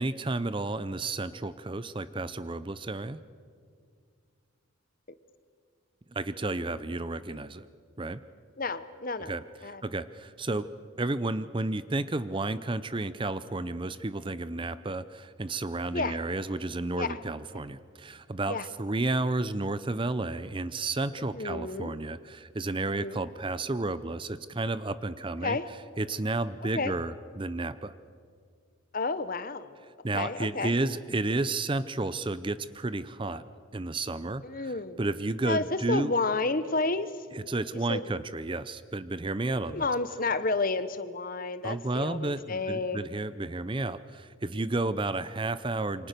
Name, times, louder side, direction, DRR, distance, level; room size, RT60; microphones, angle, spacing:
voice 1, 0.0-3.2 6.1-7.7 8.0-8.2 9.3-10.7 11.0-25.6 26.0-27.9 30.0-33.4 33.7-36.1 37.3-39.9 41.6-46.1, right 2 dB, 25° right, 14 dB, 0.6 m, -32 dB
voice 2, 8.6-9.8 15.9-16.2 17.0-17.2 18.5-18.7 21.3-21.9 23.0-23.2 25.4-25.7 26.6-26.9 28.9-29.8 30.1-30.7 34.4-35.0 35.4-37.1 37.9-38.1 39.7-43.0, left 3 dB, 40° left, 13 dB, 1.0 m, -31 dB
28.0 x 24.5 x 6.8 m, 2.2 s
head